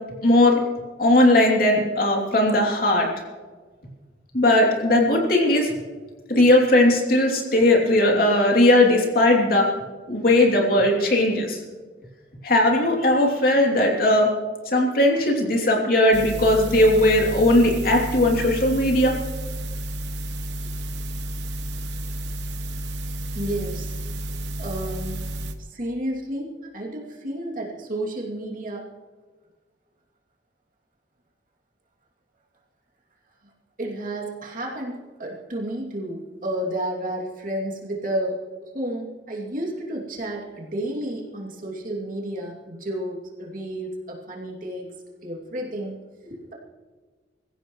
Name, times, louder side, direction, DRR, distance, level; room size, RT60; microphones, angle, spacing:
voice 1, 0.2-0.6 1.0-3.1 4.3-5.7 6.3-9.7 10.1-11.6 12.4-14.3 14.7-19.1, left 1 dB, 55° left, 0 dB, 3.0 m, -18 dB
sound 1, 16.1-25.5, right 1 dB, 85° right, 1.1 m, -31 dB
voice 2, 23.3-24.0 24.6-25.3 25.7-28.9 33.8-44.9 45.2-46.5, right 1 dB, 50° right, -2 dB, 2.7 m, -31 dB
24.5 x 15.0 x 3.2 m, 1.4 s
head